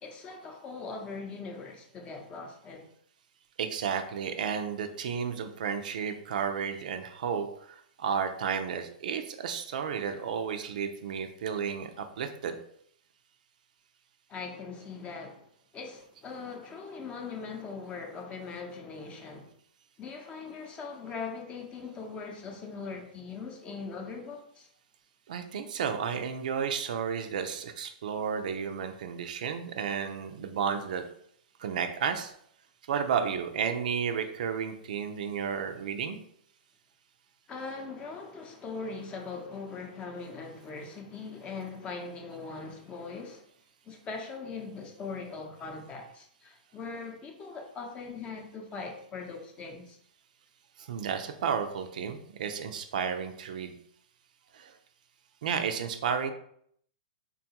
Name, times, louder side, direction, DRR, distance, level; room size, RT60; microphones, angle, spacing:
voice 1, 0.0-2.9 14.3-19.5 20.0-24.7 37.5-43.4 43.8-50.0, left 4 dB, 25° left, 0.6 m, -41 dB
voice 2, 3.6-12.6 25.3-31.0 31.6-32.3 32.9-36.2 50.8-53.8 54.5-54.7 55.4-56.3, right 7 dB, 65° right, 0.4 m, -32 dB
3.7 x 2.3 x 2.8 m
hypercardioid pair, 115°, 5 cm